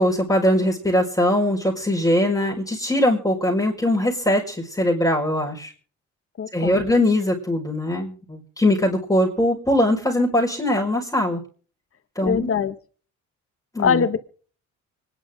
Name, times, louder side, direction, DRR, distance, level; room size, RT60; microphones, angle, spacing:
voice 1, 0.0-5.7 6.5-11.4 12.1-12.5 13.7-14.0, left 1 dB, 10° left, -3 dB, 5.2 m, -21 dB
voice 2, 6.4-6.8 12.2-12.7 13.8-14.2, left 6 dB, 50° left, 10 dB, 1.8 m, -22 dB
25.5 x 11.0 x 3.8 m, 0.42 s
cardioid pair, 90°, 30 cm